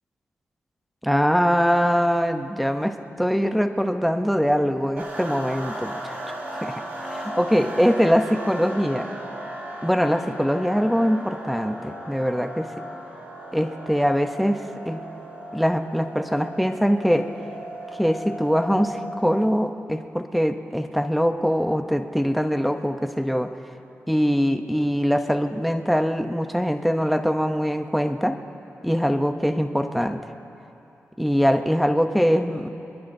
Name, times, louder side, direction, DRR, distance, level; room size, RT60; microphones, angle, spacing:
voice 1, 1.0-6.2 6.6-6.8 7.1-9.1 9.8-12.7 13.5-15.0 15.5-17.3 17.9-23.5 24.1-28.4 28.8-30.2 31.2-32.7, equal, ahead, 6 dB, 0.6 m, -22 dB
sound 1, 5.0-19.5, right 1 dB, 45° right, 3.2 m, -36 dB
25.0 x 21.5 x 2.6 m, 2.8 s
wide cardioid pair, 160°, 5 cm